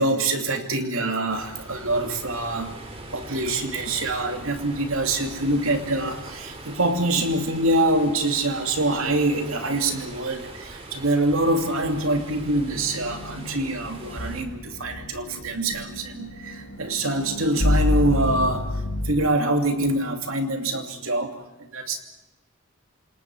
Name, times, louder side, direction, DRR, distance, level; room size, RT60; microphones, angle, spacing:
voice 1, 0.0-2.8 3.1-21.4 21.7-22.0, right 2 dB, 90° right, 5 dB, 2.7 m, -25 dB
sound 1, 1.3-14.4, right 1 dB, 30° right, 2.8 m, -41 dB
sound 2, 12.2-19.1, left 2 dB, 75° left, 2.7 m, -29 dB
28.0 x 27.0 x 4.8 m, 0.93 s
head